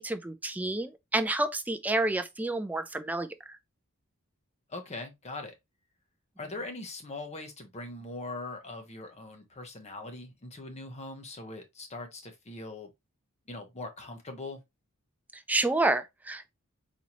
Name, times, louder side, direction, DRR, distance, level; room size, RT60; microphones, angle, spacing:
voice 1, 0.0-3.6 15.3-16.5, right 2 dB, 5° right, 0.3 m, -29 dB
voice 2, 4.7-5.5 6.4-12.9 13.5-14.6, left 2 dB, 30° left, 0.9 m, -41 dB
4.1 x 2.8 x 2.9 m
head